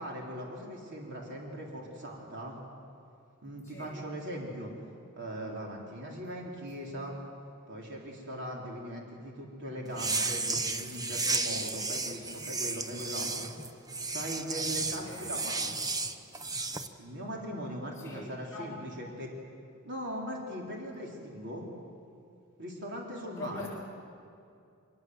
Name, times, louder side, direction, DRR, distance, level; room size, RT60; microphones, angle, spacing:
voice 1, 0.0-2.6 3.4-4.7 5.2-7.2 7.7-13.5 14.1-15.8 17.0-19.3 19.9-21.7 22.6-23.7, equal, 55° right, -2 dB, 3.6 m, -40 dB
sound 1, 9.9-16.9, right 3 dB, 20° right, 0.9 m, -33 dB
voice 2, 18.0-18.8 23.4-23.7, left 3 dB, 15° left, -6 dB, 7.5 m, -43 dB
25.5 x 20.5 x 7.7 m, 2.5 s
head